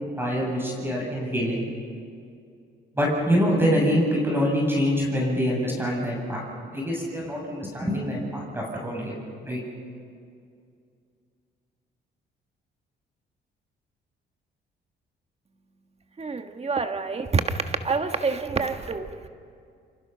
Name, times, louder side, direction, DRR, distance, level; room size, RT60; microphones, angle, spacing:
voice 1, 0.2-1.6 3.0-6.4 6.7-9.2 9.4-9.6, equal, 10° right, -2 dB, 7.8 m, -25 dB
voice 2, 16.2-19.3, right 4 dB, 30° right, 7 dB, 1.5 m, -27 dB
29.0 x 26.0 x 5.7 m, 2.3 s
cardioid pair, 90°, 20 cm